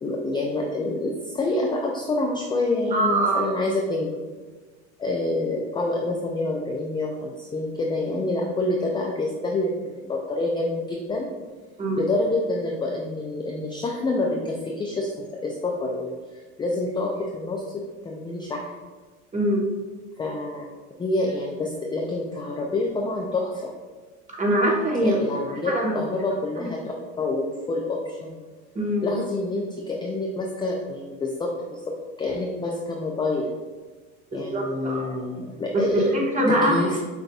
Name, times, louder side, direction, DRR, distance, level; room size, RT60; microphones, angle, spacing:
voice 1, 0.0-4.1 5.0-11.3 12.0-18.7 20.2-20.7 21.0-23.7 25.0-28.5 29.0-33.5 34.3-36.1 36.5-37.0, left 2 dB, 15° left, -1 dB, 0.4 m, -27 dB
voice 2, 2.9-3.5 11.8-12.0 19.3-19.7 24.4-25.2 25.6-26.0 26.6-26.7 28.7-29.1 34.3-35.1 35.7-36.9, right 1 dB, 20° right, -1 dB, 1.0 m, -23 dB
6.5 x 2.6 x 2.3 m, 1.3 s
supercardioid pair, 95°, 35 cm